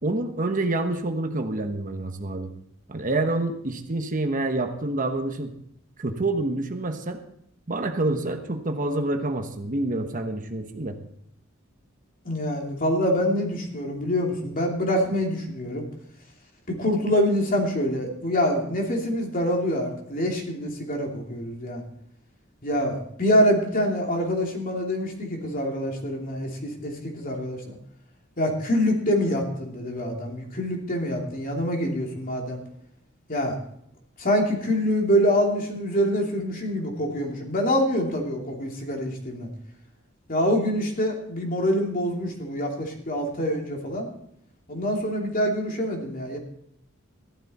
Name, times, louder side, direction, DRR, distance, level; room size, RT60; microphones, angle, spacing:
voice 1, 0.0-2.5 2.9-5.5 6.0-7.2 7.7-11.0, right 2 dB, 40° right, 6 dB, 1.1 m, -27 dB
voice 2, 12.2-15.8 16.7-21.8 22.6-27.8 28.4-32.6 33.3-33.6 34.2-39.5 40.3-44.1 44.7-46.4, equal, 45° left, 1 dB, 2.8 m, -25 dB
14.5 x 12.0 x 4.2 m, 0.71 s
head